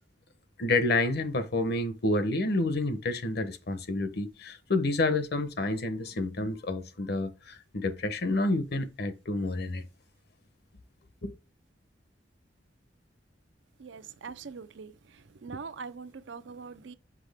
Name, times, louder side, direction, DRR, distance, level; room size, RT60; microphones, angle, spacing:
voice 1, 0.6-9.8 11.2-11.3, left 2 dB, 60° left, 0.9 m, -29 dB
voice 2, 13.8-14.9 15.4-16.9, right 5 dB, 85° right, 0.5 m, -42 dB
6.1 x 5.6 x 3.5 m
head